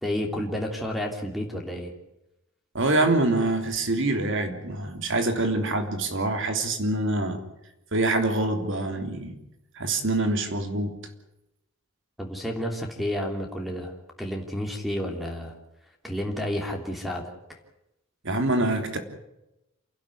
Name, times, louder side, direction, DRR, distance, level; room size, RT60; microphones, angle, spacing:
voice 1, 0.0-1.9 12.2-13.9 14.2-15.5 16.0-17.2, left 1 dB, ahead, 3 dB, 3.1 m, -30 dB
voice 2, 2.7-7.4 7.9-9.4 9.7-10.9 18.2-19.0, right 2 dB, 65° right, 6 dB, 3.3 m, -25 dB
28.5 x 12.0 x 9.9 m, 0.90 s
head